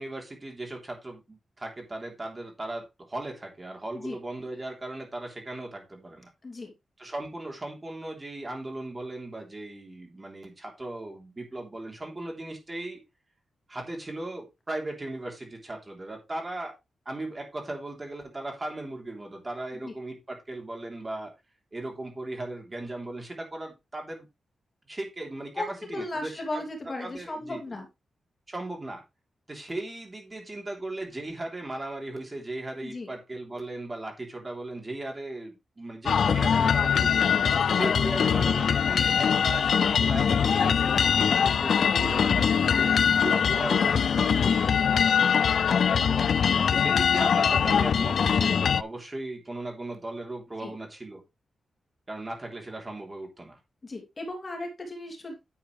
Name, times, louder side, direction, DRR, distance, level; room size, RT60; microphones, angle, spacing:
voice 1, 0.0-6.3 7.0-13.0 13.7-16.7 17.1-21.3 21.7-24.3 24.9-26.6 27.0-27.8 28.5-29.0 29.5-37.3 37.7-45.4 46.7-51.2 52.1-53.6, right 2 dB, 25° right, 1 dB, 3.4 m, -37 dB
voice 2, 6.4-6.7 19.8-19.9 25.5-27.9 32.8-33.1 37.4-37.7 41.7-43.0 44.2-44.7 50.6-50.7 53.8-55.3, left 2 dB, 30° left, 3 dB, 2.7 m, -36 dB
sound 1, 36.1-48.8, left 7 dB, 70° left, 0.4 m, -22 dB
10.0 x 7.8 x 3.3 m, 0.23 s
wide cardioid pair, 115°, 0 cm